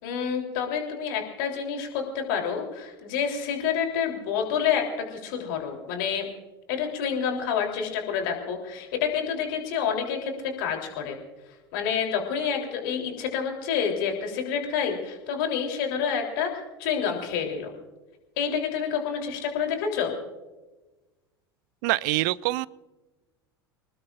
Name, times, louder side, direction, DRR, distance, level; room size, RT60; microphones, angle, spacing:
voice 1, 0.0-6.3 6.7-11.2 11.7-17.7 18.4-20.1, left 7 dB, 55° left, 3.5 m, -28 dB
voice 2, 21.8-22.7, right 20 dB, 50° right, 0.5 m, -25 dB
25.5 x 20.0 x 2.5 m
figure-of-eight pair, 80°, 13 cm